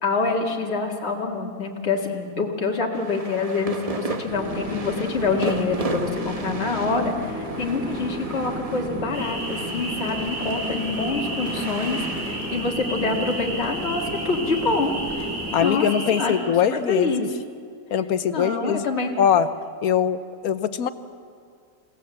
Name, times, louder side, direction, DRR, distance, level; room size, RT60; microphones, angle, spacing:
voice 1, 0.0-15.9 16.1-16.3 16.7-17.3 18.2-19.1, left 3 dB, 45° left, -1 dB, 2.2 m, -26 dB
sound 1, 2.9-14.4, right 3 dB, 30° right, 1.0 m, -36 dB
sound 2, 4.3-15.6, equal, 5° right, 3.4 m, -33 dB
sound 3, 9.1-16.4, right 1 dB, 65° right, 4.4 m, -33 dB
voice 2, 15.5-17.3 17.9-18.9 19.2-19.5 19.8-20.9, left 8 dB, 80° left, 12 dB, 1.3 m, -22 dB
28.5 x 16.5 x 7.8 m, 2.2 s
omnidirectional pair, 1.5 m